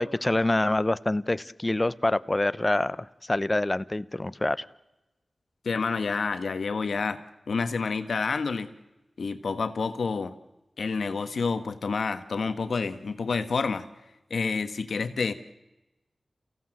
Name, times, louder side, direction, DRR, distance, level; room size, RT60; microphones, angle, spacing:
voice 1, 0.0-4.7, left 2 dB, 25° left, 16 dB, 0.8 m, -26 dB
voice 2, 5.6-7.2 7.5-8.7 9.2-10.3 10.8-13.9 14.3-15.3, left 4 dB, 90° left, 10 dB, 1.4 m, -28 dB
29.0 x 16.0 x 7.8 m, 0.97 s
cardioid pair, 55°, 0 cm